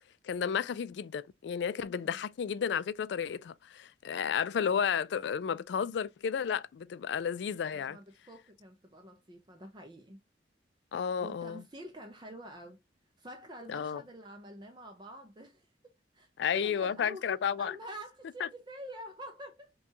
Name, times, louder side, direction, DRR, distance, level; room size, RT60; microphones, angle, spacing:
voice 1, 0.2-8.0 10.9-11.6 13.7-14.0 16.4-17.8 18.4-18.5, left 7 dB, 70° left, 0.3 m, -32 dB
voice 2, 1.9-2.2 7.7-10.2 11.2-12.8 13.2-15.7 16.1-17.2 17.6-19.7, equal, 25° right, 0.5 m, -47 dB
5.8 x 2.3 x 2.7 m
head